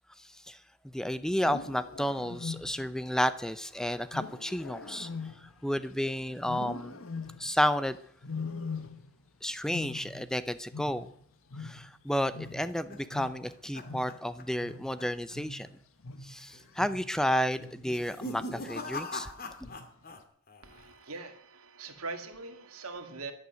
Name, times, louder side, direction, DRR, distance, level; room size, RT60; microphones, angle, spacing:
voice 1, 0.2-0.6 0.9-7.0 7.4-8.0 9.4-11.1 11.6-15.7 16.2-19.3, equal, 5° left, 13 dB, 0.5 m, -31 dB
Wild animals, 1.3-3.0 4.1-6.0 6.4-7.6 8.2-9.3 9.5-12.1 12.3-17.2 17.6-18.0 18.5-18.9 19.6-20.1, left 4 dB, 80° left, 1.3 m, -42 dB
sound 1, 12.4-14.7 15.0-15.3 15.7-15.8 16.5-16.9 17.8-20.2 20.5-21.1, left 2 dB, 45° left, 2.2 m, -41 dB
voice 2, 20.6-23.3, right 3 dB, 90° right, 6 dB, 2.2 m, -42 dB
11.5 x 11.0 x 9.3 m, 0.63 s
head